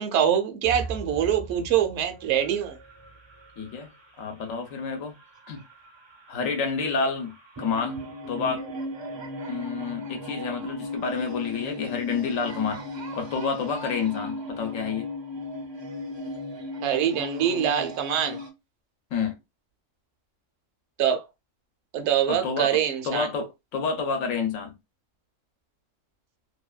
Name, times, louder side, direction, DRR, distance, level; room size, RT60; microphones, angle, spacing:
voice 1, 0.0-2.8 16.8-18.4 21.0-21.2 21.9-23.3, right 9 dB, 65° right, 0.8 m, -24 dB
sound of dark jungle and Lion is the King of light, 0.6-3.8 5.5-5.6 5.9-6.1 6.5-6.6 7.1-18.5, left 1 dB, 40° right, 0.4 m, -36 dB
voice 2, 3.6-3.9 4.2-5.1 5.5-5.6 6.3-8.0 8.3-8.7 9.5-12.8 13.1-15.1 19.1-19.4 22.3-22.7 23.0-24.8, left 5 dB, 80° left, 1.1 m, -29 dB
2.7 x 2.2 x 2.3 m
omnidirectional pair, 1.3 m